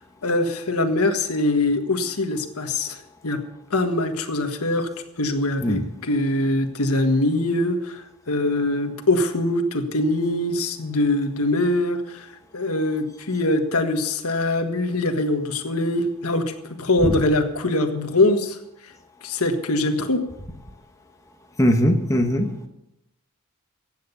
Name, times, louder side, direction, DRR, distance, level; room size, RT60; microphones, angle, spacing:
voice 1, 0.2-3.0 3.2-3.4 3.7-4.9 5.2-12.3 12.5-16.5 16.8-18.6 19.2-20.2, left 2 dB, 85° left, 6 dB, 1.6 m, -23 dB
voice 2, 21.6-22.7, equal, 15° left, 4 dB, 1.2 m, -20 dB
15.5 x 9.2 x 7.0 m, 0.86 s
head